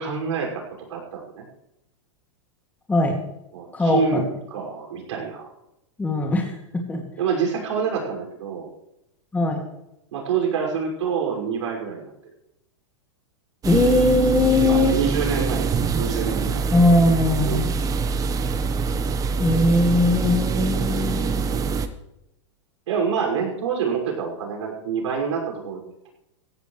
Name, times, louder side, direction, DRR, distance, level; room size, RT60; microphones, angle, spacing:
voice 1, 0.0-1.5 3.5-4.2 4.5-5.4 7.2-8.7 10.1-12.1 14.6-16.6 17.4-17.7 21.3-21.8 22.9-26.1, right 6 dB, 75° right, 0 dB, 6.0 m, -27 dB
voice 2, 3.7-4.2 6.0-6.5 6.9-7.0 9.3-9.6 13.6-14.9 16.7-17.7 19.4-21.4, left 2 dB, 10° left, 1 dB, 2.4 m, -20 dB
sound 1, 13.6-21.9, right 5 dB, 20° right, 1.2 m, -24 dB
16.5 x 15.5 x 3.3 m, 0.85 s
hypercardioid pair, 125°, 16 cm